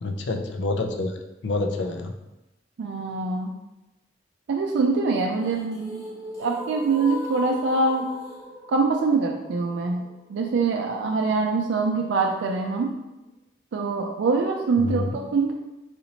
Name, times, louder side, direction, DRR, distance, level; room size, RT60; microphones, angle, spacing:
voice 1, 0.0-1.2 1.4-2.1 14.8-15.2, left 2 dB, 75° left, 4 dB, 0.4 m, -27 dB
voice 2, 2.8-3.5 4.5-6.1 6.4-8.1 8.7-12.9 13.7-15.5, right 4 dB, 85° right, 2 dB, 0.3 m, -24 dB
sound 1, 5.2-11.2, left 1 dB, 20° left, 0.7 m, -38 dB
4.1 x 2.9 x 2.7 m, 0.98 s
head